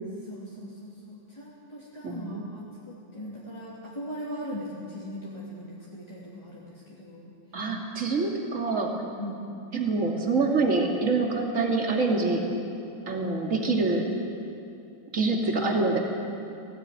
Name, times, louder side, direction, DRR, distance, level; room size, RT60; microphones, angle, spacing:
voice 1, 0.2-7.3 9.2-9.5, equal, 10° left, -8 dB, 2.5 m, -40 dB
voice 2, 2.0-2.4 7.5-8.9 9.7-12.4 13.1-14.1 15.1-16.0, right 3 dB, 25° right, 0 dB, 2.3 m, -25 dB
17.5 x 17.5 x 9.2 m, 2.6 s
omnidirectional pair, 3.8 m